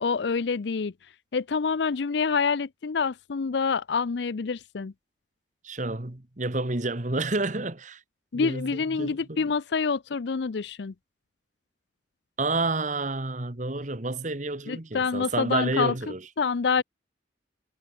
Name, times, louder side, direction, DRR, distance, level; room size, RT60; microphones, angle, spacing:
voice 1, 0.0-0.9 1.3-4.9 8.3-10.9 14.7-15.9 16.4-16.8, left 5 dB, 70° left, 0.5 m, -27 dB
voice 2, 5.6-8.0 8.3-9.5 12.4-16.3, right 2 dB, 40° right, 1.5 m, -30 dB
head